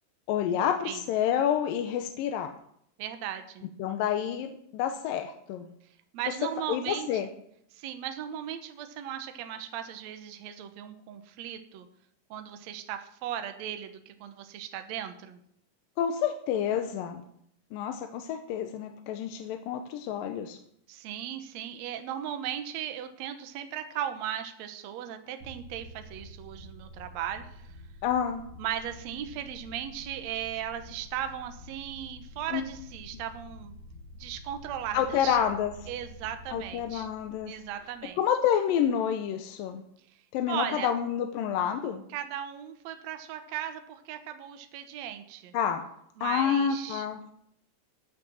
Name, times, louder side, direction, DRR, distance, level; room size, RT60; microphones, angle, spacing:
voice 1, 0.3-2.5 3.8-5.7 6.7-7.3 16.0-17.3 17.7-20.6 28.0-28.4 32.5-32.6 34.9-35.7 36.5-37.6 38.2-39.8 40.3-42.0 45.5-45.9 46.2-47.2, left 9 dB, 75° left, 7 dB, 2.4 m, -28 dB
voice 2, 3.0-3.7 6.1-7.2 7.7-11.9 12.3-15.4 20.9-27.8 28.6-33.7 34.1-35.4 35.9-37.1 37.5-38.2 40.1-40.9 42.1-45.5 46.2-47.3, right 10 dB, 65° right, 8 dB, 1.9 m, -37 dB
sound 1, 25.4-38.7, left 1 dB, 45° right, 3.5 m, -48 dB
13.5 x 6.5 x 7.1 m, 0.70 s
omnidirectional pair, 4.2 m